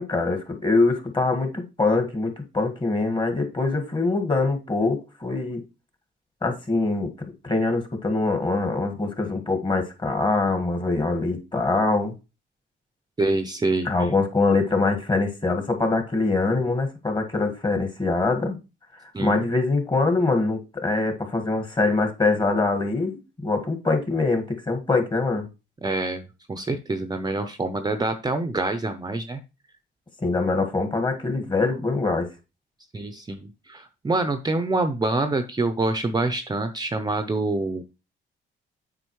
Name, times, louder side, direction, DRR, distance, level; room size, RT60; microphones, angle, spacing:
voice 1, 0.0-5.6 6.4-7.1 7.4-12.1 13.9-18.6 19.2-25.5 30.2-32.3, left 3 dB, 25° left, 5 dB, 1.7 m, -23 dB
voice 2, 13.2-14.1 19.1-19.4 25.8-26.2 26.5-29.4 32.9-37.8, right 2 dB, 20° right, 8 dB, 0.7 m, -26 dB
7.8 x 5.1 x 3.1 m, 0.28 s
cardioid pair, 90°, 20 cm